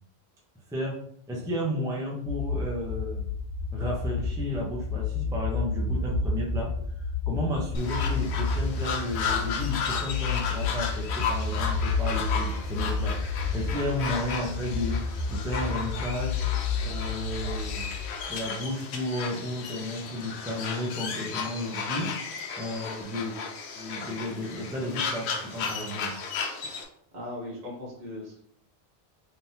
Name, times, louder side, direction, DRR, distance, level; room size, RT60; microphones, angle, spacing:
voice 1, 1.3-3.3 3.7-6.7 7.0-15.0 15.3-16.4 16.8-17.9 18.3-22.1 22.6-23.4 23.7-26.1, left 1 dB, 5° right, -3 dB, 0.6 m, -33 dB
sound 1, 2.2-18.2, left 4 dB, 50° left, 1.2 m, -30 dB
sound 2, 7.7-26.8, left 5 dB, 85° left, 0.9 m, -34 dB
voice 2, 27.1-28.4, left 1 dB, 45° right, -4 dB, 1.2 m, -38 dB
3.6 x 2.9 x 2.7 m, 0.64 s
omnidirectional pair, 1.1 m